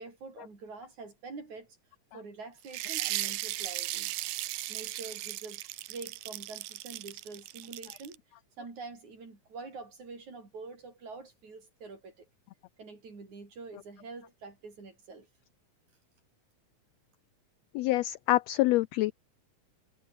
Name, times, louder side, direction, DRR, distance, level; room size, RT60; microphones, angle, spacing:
voice 1, 0.0-1.8 2.1-4.1 4.5-5.6 5.9-8.2 8.6-12.3 12.8-15.3, right 4 dB, 65° right, 7.7 m, -46 dB
sound 1, 2.7-8.2, right 17 dB, 90° right, 2.4 m, -36 dB
voice 2, 17.7-19.1, left 17 dB, 85° left, 1.5 m, -26 dB
omnidirectional pair, 3.6 m